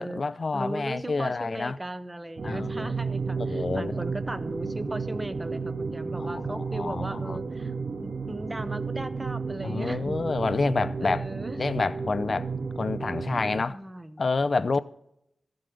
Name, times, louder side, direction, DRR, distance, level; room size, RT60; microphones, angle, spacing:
voice 1, 0.0-1.8 2.4-2.9 3.4-4.0 6.2-7.4 9.6-11.3 11.6-12.5 12.8-13.8 14.2-14.8, left 3 dB, 45° left, 0.5 m, -28 dB
voice 2, 0.5-7.7 8.0-10.3 11.0-11.6 13.7-14.2, right 1 dB, 15° right, 0.7 m, -37 dB
sound 1, 2.4-13.6, right 4 dB, 60° right, 0.6 m, -33 dB
14.5 x 7.8 x 5.1 m
wide cardioid pair, 145°, 0 cm